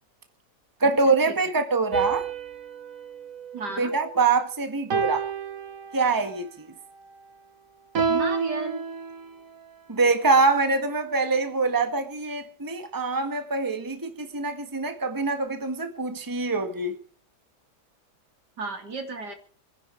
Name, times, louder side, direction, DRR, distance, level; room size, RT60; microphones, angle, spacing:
voice 1, 0.8-2.3 3.8-5.2 5.9-6.7 9.9-16.9, right 3 dB, 10° right, 1.6 m, -24 dB
sound 1, 1.9-4.3 4.9-6.4 7.9-9.6, right 5 dB, 55° right, 1.7 m, -30 dB
voice 2, 3.5-3.9 8.1-8.8 18.6-19.3, right 4 dB, 75° right, 3.6 m, -33 dB
26.5 x 10.5 x 4.6 m
omnidirectional pair, 1.8 m